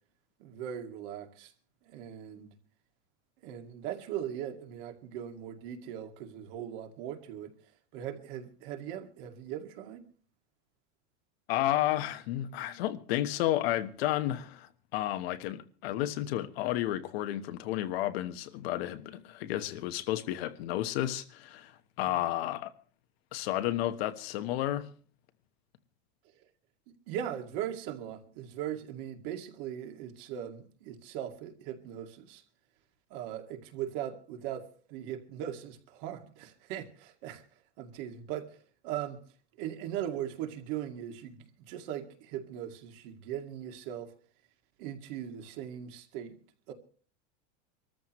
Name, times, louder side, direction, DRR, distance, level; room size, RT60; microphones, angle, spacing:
voice 1, 0.4-1.5 1.8-2.5 3.4-7.5 7.9-10.1 22.0-22.2 27.1-32.4 33.1-37.4 37.8-39.2 39.6-44.1 44.8-46.4 46.7-46.8, right 10 dB, 50° right, 2.3 m, -39 dB
voice 2, 11.5-21.7 22.0-22.7 23.3-24.9, left 14 dB, 65° left, 1.3 m, -32 dB
25.5 x 14.0 x 3.1 m
supercardioid pair, 175°, 33 cm